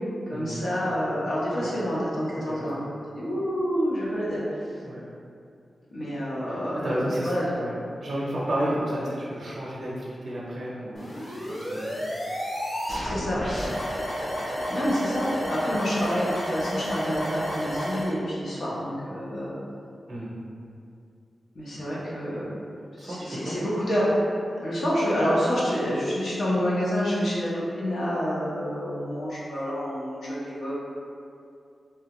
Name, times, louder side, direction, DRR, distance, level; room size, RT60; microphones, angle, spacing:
voice 1, 0.3-2.9 3.1-4.4 5.9-7.5 13.0-13.4 14.7-19.5 21.5-22.5 23.0-24.2 24.6-30.7, equal, 85° left, -8 dB, 0.9 m, -28 dB
voice 2, 6.5-7.7 8.0-12.0 13.7-13.8 20.1-20.3 23.0-23.6, right 1 dB, 50° right, -7 dB, 0.5 m, -32 dB
sound 1, 10.9-18.1, equal, 45° left, 1.3 m, -31 dB
3.4 x 2.3 x 2.9 m, 2.4 s
wide cardioid pair, 125°, 0 cm